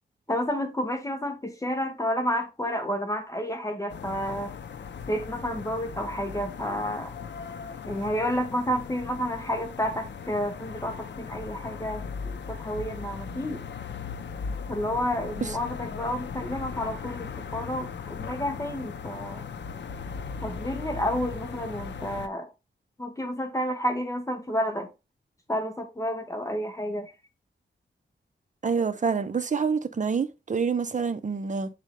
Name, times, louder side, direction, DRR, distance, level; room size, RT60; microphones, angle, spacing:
voice 1, 0.3-4.5 5.1-7.1 7.9-13.6 14.7-19.5 20.4-22.5 23.0-24.9 25.5-27.1, equal, 15° left, 1.2 m, -30 dB
sound 1, 3.9-22.3, left 6 dB, 70° left, 0.6 m, -38 dB
voice 2, 28.6-31.7, right 5 dB, 40° right, 0.7 m, -27 dB
7.4 x 4.0 x 3.3 m
wide cardioid pair, 125°, 19 cm